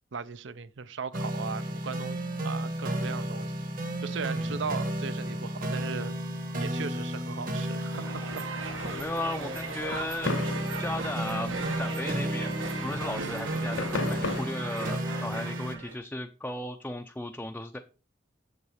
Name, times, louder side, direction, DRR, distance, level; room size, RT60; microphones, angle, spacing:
voice 1, 0.1-3.5 4.0-6.2 6.6-8.2, right 5 dB, 70° right, 0.6 m, -37 dB
sound 1, 1.1-15.8, right 1 dB, 45° right, 1.3 m, -33 dB
sound 2, 7.9-16.0, right 3 dB, 85° right, 1.7 m, -38 dB
sound 3, 8.6-14.5, left 4 dB, 80° left, 0.6 m, -39 dB
voice 2, 8.9-10.4 10.8-17.8, left 1 dB, 10° left, 0.4 m, -36 dB
7.5 x 6.9 x 4.9 m
head